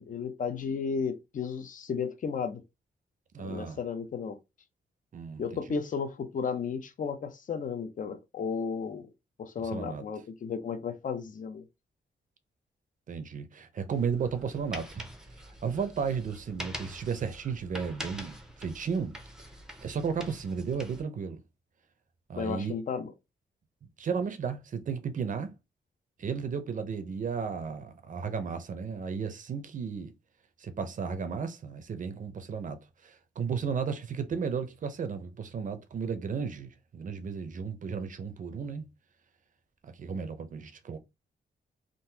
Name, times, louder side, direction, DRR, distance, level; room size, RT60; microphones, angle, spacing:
voice 1, 0.0-2.6 3.4-4.4 5.4-9.1 9.4-11.6 22.4-23.1, left 6 dB, 45° left, 0.6 m, -34 dB
voice 2, 3.3-3.8 5.1-5.8 9.6-10.0 13.1-15.1 15.6-19.2 19.8-21.4 22.3-22.8 24.0-25.5 26.2-30.1 30.6-38.9 39.8-41.0, right 6 dB, 45° right, 0.6 m, -34 dB
sound 1, 13.9-21.0, equal, 5° right, 0.6 m, -45 dB
3.8 x 2.5 x 2.7 m
wide cardioid pair, 165°, 18 cm